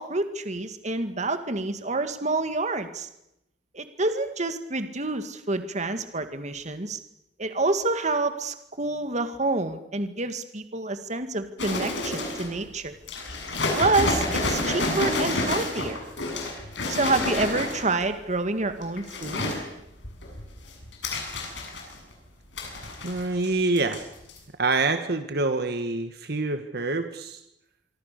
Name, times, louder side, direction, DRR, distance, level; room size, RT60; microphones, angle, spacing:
voice 1, 0.0-3.1 3.7-7.0 7.4-12.9 13.8-16.0 16.9-19.6, right 2 dB, 40° right, 9 dB, 2.1 m, -28 dB
sound 1, 11.6-12.6 13.1-18.0 18.7-19.6 20.0-22.1 22.6-23.5 23.8-24.0 24.3-24.4, left 2 dB, 90° left, 7.3 m, -29 dB
voice 2, 23.0-24.0 24.6-27.4, right 3 dB, 60° right, 8 dB, 1.8 m, -26 dB
25.5 x 24.5 x 6.9 m, 0.82 s
head